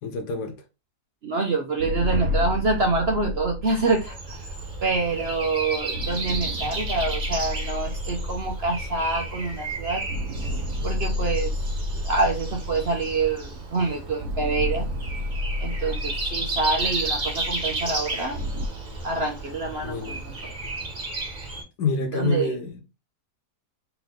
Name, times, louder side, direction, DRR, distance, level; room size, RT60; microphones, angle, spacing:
voice 1, 0.0-0.5 19.8-20.2 21.8-22.8, left 3 dB, 80° left, 1.5 m, -27 dB
voice 2, 1.2-4.5 4.8-10.0 10.8-11.5 12.0-14.9 15.6-18.4 19.0-20.3 22.1-22.5, right 3 dB, 50° right, 0.8 m, -26 dB
sound 1, 1.8-5.4 5.9-9.7 10.1-13.7 14.2-18.7, left 1 dB, 70° right, 1.2 m, -31 dB
Breathing, 3.9-21.6, right 2 dB, 30° right, 1.3 m, -33 dB
3.9 x 3.4 x 3.6 m
omnidirectional pair, 1.8 m